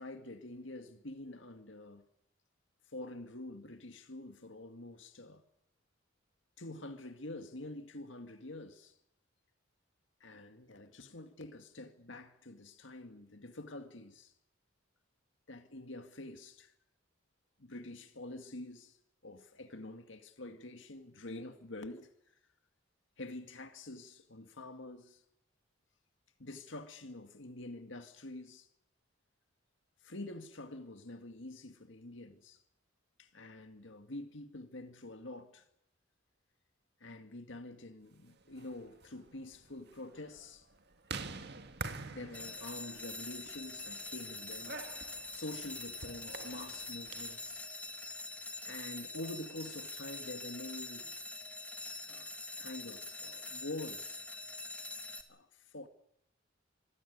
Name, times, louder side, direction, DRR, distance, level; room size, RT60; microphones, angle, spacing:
voice 1, 0.0-2.1 2.9-5.4 6.6-8.9 10.2-14.3 15.5-16.7 17.6-19.0 19.2-22.1 23.2-25.2 26.4-28.7 30.0-32.6 33.2-35.6 37.0-40.7 42.1-44.9 45.3-47.7 48.6-51.1 52.1-52.3 52.6-54.2 55.3-55.9, left 2 dB, 70° left, 2.1 m, -47 dB
sound 1, 38.4-47.5, right 4 dB, 60° right, 1.8 m, -47 dB
sound 2, 42.3-55.2, left 2 dB, 10° left, 1.9 m, -44 dB
25.5 x 15.5 x 9.5 m
head